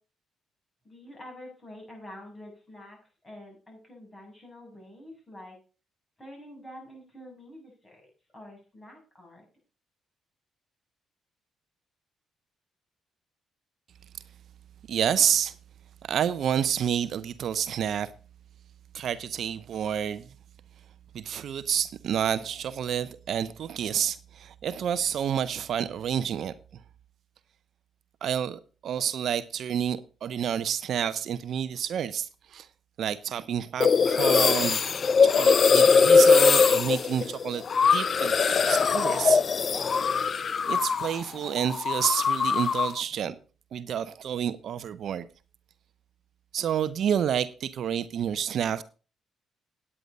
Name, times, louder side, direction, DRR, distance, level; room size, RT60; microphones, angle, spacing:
voice 1, 0.8-5.6 6.2-8.1 8.3-9.4, left 1 dB, 20° left, 7.6 m, -47 dB
voice 2, 14.9-15.5 16.0-18.1 18.9-20.3 21.1-26.5 28.2-32.7 33.0-34.8 35.2-37.6 37.9-39.4 39.7-40.0 40.6-43.4 43.7-45.3 46.5-48.8, right 9 dB, 65° right, 0.7 m, -29 dB
sound 1, 33.8-41.2 41.5-43.0, left 5 dB, 45° left, 0.5 m, -21 dB
9.9 x 9.1 x 5.3 m
cardioid pair, 90°, 0 cm